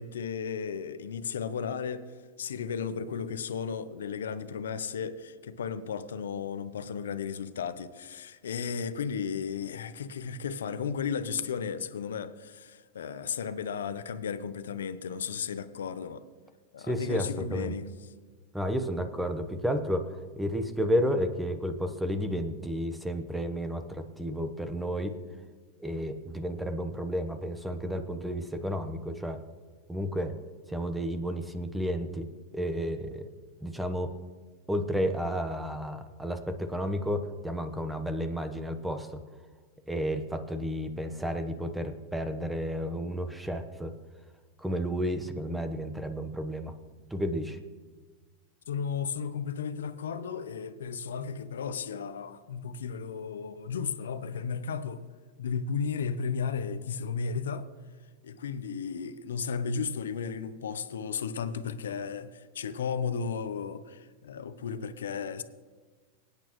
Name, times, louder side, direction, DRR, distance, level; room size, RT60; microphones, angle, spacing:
voice 1, 0.0-16.2 16.7-17.9 48.7-55.0 55.4-57.7 58.2-65.4, left 6 dB, 85° left, 12 dB, 0.7 m, -34 dB
voice 2, 16.8-17.7 18.5-25.1 25.8-29.4 29.9-30.3 30.7-32.3 32.5-33.3 33.6-34.1 34.7-39.2 39.9-43.9 44.6-46.7 47.1-47.6, equal, 5° right, 8 dB, 1.1 m, -32 dB
24.5 x 8.6 x 3.1 m, 1.4 s
hypercardioid pair, 105°, 0 cm